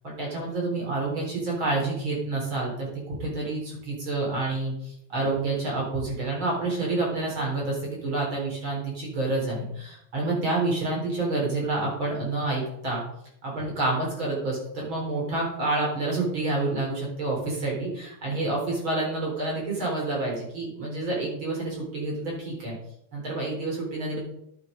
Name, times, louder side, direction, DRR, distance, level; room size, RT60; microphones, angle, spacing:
voice 1, 0.0-13.0 13.4-22.7 23.1-24.2, right 2 dB, 30° right, -3 dB, 4.2 m, -28 dB
11.0 x 7.9 x 5.2 m, 0.73 s
omnidirectional pair, 5.2 m